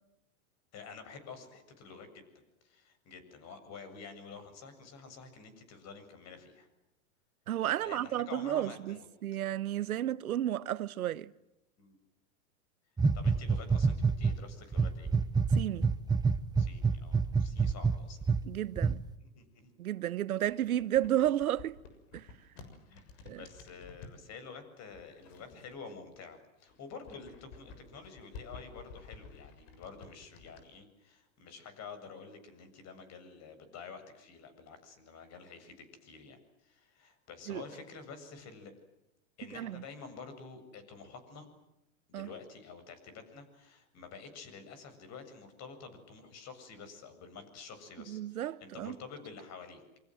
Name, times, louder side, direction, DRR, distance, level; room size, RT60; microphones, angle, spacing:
voice 1, 0.7-2.2 2.6-6.7 7.8-9.1 11.8-12.0 13.1-15.1 16.6-18.2 19.2-19.7 22.9-38.7 39.4-41.5 42.1-49.8, left 5 dB, 40° left, 7.7 m, -49 dB
voice 2, 7.5-9.0 9.2-11.3 15.5-15.9 18.5-19.0 19.8-21.7 22.1-22.3 23.3-23.4 37.5-37.6 39.5-39.8 42.1-42.3 48.1-49.0, right 12 dB, 90° right, 1.2 m, -32 dB
sound 1, 13.0-14.4 14.7-18.4 18.8-18.9, right 5 dB, 10° right, 1.1 m, -27 dB
sound 2, 20.4-24.2 24.9-26.2 26.5-30.6, left 4 dB, 60° left, 7.0 m, -52 dB
28.0 x 25.0 x 7.9 m
hypercardioid pair, 120°, 42 cm